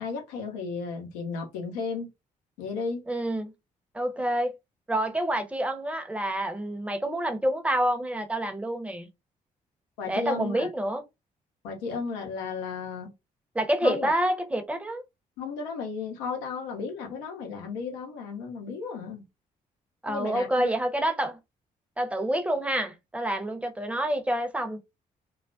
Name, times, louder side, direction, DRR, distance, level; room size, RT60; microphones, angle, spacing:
voice 1, 0.0-2.1 2.6-3.0 10.0-10.7 11.6-13.1 13.8-14.1 15.4-19.3 20.1-20.7, left 5 dB, 80° left, 0.7 m, -34 dB
voice 2, 3.1-3.5 3.9-4.6 4.9-9.1 10.1-11.0 13.5-15.0 20.0-21.4 22.0-24.8, right 1 dB, 5° right, 0.7 m, -28 dB
2.3 x 2.1 x 2.5 m
hypercardioid pair, 45°, 19 cm